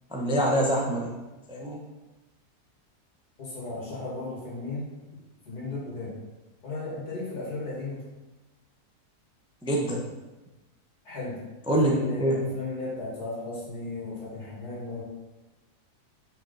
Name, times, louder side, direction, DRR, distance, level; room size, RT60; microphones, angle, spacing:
voice 1, 0.1-1.1 1.5-1.8 9.6-10.0 11.7-12.4, right 1 dB, 5° right, -1 dB, 0.4 m, -25 dB
voice 2, 3.4-4.9 5.5-6.2 6.6-8.0 11.0-11.4 11.8-15.0, left 2 dB, 70° left, -5 dB, 2.5 m, -35 dB
6.2 x 4.5 x 3.9 m, 1.1 s
omnidirectional pair, 1.7 m